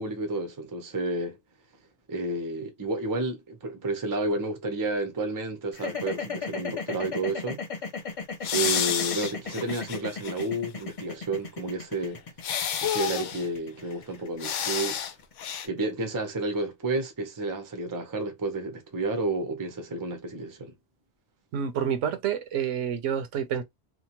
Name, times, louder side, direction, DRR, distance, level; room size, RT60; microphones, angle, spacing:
voice 1, 0.0-1.4 2.1-7.6 8.5-12.2 12.8-15.0 15.6-20.7, right 2 dB, 25° right, 0.5 m, -31 dB
sound 1, 5.7-15.9, left 5 dB, 45° left, 0.4 m, -36 dB
sound 2, 8.4-10.5 10.8-10.9 12.4-13.5 14.4-15.1 15.4-15.7, left 9 dB, 75° left, 0.9 m, -29 dB
voice 2, 21.5-23.6, right 8 dB, 75° right, 0.9 m, -28 dB
2.8 x 2.1 x 2.9 m
omnidirectional pair, 1.3 m